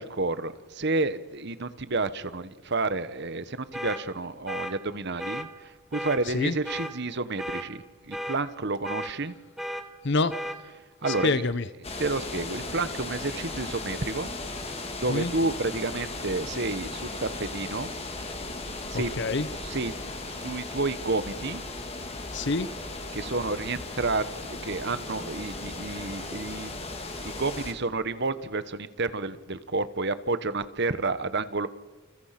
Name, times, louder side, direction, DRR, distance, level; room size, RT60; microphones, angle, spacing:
voice 1, 0.0-9.4 11.0-11.4 12.0-14.3 14.6-17.9 18.9-19.1 19.6-19.9 20.3-21.6 23.1-26.8 27.2-31.7, right 3 dB, 50° right, 14 dB, 1.2 m, -30 dB
sound 1, 3.7-4.0 4.5-4.7 5.2-5.5 5.9-6.2 6.7-6.9 7.4-7.7 8.1-8.4 8.8-9.1 9.6-9.8 10.3-10.6 11.0-11.3, equal, ahead, 2.0 m, -34 dB
voice 2, 10.0-10.4 11.1-11.6 15.1-15.3 18.9-19.5 22.3-22.7, left 3 dB, 50° left, 14 dB, 0.8 m, -26 dB
sound 2, 11.8-27.7, left 2 dB, 30° left, 3.1 m, -36 dB
30.0 x 28.5 x 5.9 m, 1.3 s
head